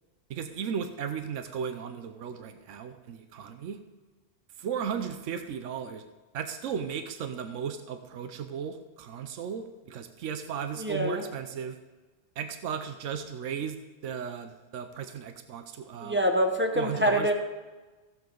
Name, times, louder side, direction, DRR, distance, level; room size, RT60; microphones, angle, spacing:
voice 1, 0.3-3.8 4.6-6.0 6.3-11.8 12.4-13.8 14.0-16.2 16.8-17.3, right 7 dB, 85° right, 8 dB, 1.0 m, -35 dB
voice 2, 10.7-11.3 16.0-17.3, equal, 10° right, 3 dB, 0.8 m, -25 dB
15.5 x 7.7 x 3.9 m, 1.2 s
omnidirectional pair, 1.2 m